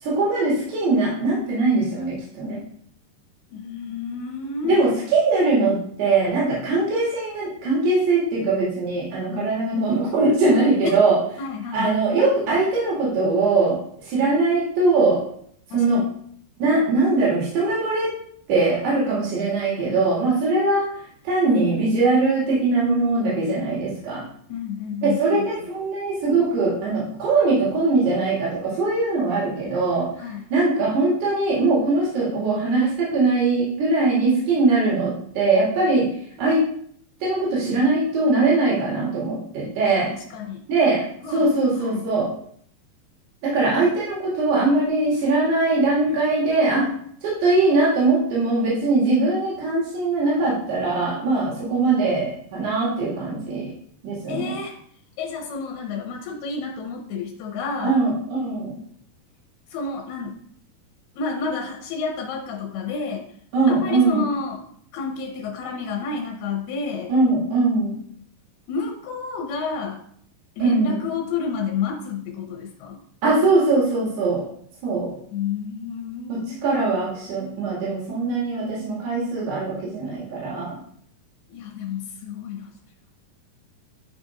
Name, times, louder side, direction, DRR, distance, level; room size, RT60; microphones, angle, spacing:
voice 1, 0.0-2.6 4.6-11.2 11.7-15.2 15.7-16.0 16.6-18.1 18.5-20.9 21.2-24.2 25.0-30.1 30.5-36.1 36.4-36.6 37.2-40.1 40.7-41.0 41.3-42.3 43.4-46.9 47.2-53.7 54.0-54.5 57.8-58.8 63.5-64.3 67.1-68.0 70.6-71.0 73.2-74.4 74.8-75.1 76.6-80.7, right 3 dB, 80° right, -7 dB, 4.3 m, -21 dB
voice 2, 3.5-4.9 9.3-9.6 10.8-10.9 11.4-11.9 15.7-16.1 24.5-25.8 30.2-30.4 40.1-40.7 41.2-41.5 41.7-42.1 46.1-46.2 54.3-54.8 55.2-58.0 59.7-60.4 61.2-63.3 63.7-64.7 64.9-67.1 68.7-70.0 70.6-73.0 75.3-76.8 81.5-82.7, left 5 dB, 80° left, 1 dB, 2.8 m, -30 dB
12.5 x 5.4 x 2.6 m, 0.62 s
omnidirectional pair, 4.6 m